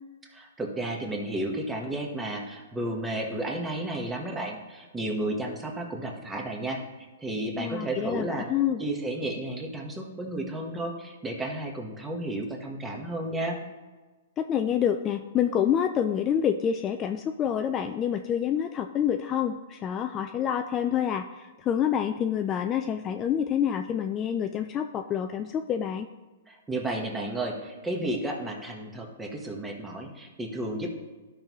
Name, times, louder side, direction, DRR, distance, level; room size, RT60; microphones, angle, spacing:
voice 1, 0.3-6.8 7.2-8.5 8.8-13.6 26.5-31.0, right 1 dB, 10° right, 1 dB, 1.2 m, -32 dB
voice 2, 7.6-8.8 14.4-26.1, left 9 dB, 25° left, 6 dB, 0.4 m, -27 dB
12.5 x 5.4 x 3.1 m, 1.3 s
hypercardioid pair, 140°, 0 cm